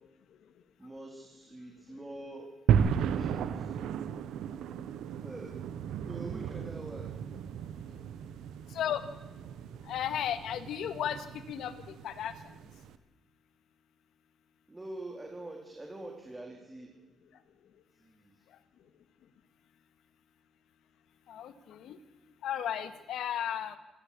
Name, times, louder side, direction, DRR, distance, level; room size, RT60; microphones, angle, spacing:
voice 1, 0.8-2.5 2.9-3.7 5.2-5.7 6.1-7.2 14.7-16.9 18.0-18.4, right 2 dB, 15° right, 1 dB, 4.0 m, -45 dB
sound 1, 2.7-13.0, right 8 dB, 85° right, 1.3 m, -34 dB
voice 2, 9.9-11.7 12.0-12.3 21.3-22.0 22.4-23.8, left 10 dB, 75° left, 11 dB, 2.0 m, -34 dB
27.0 x 15.5 x 8.7 m, 1.2 s
cardioid pair, 90°, 0 cm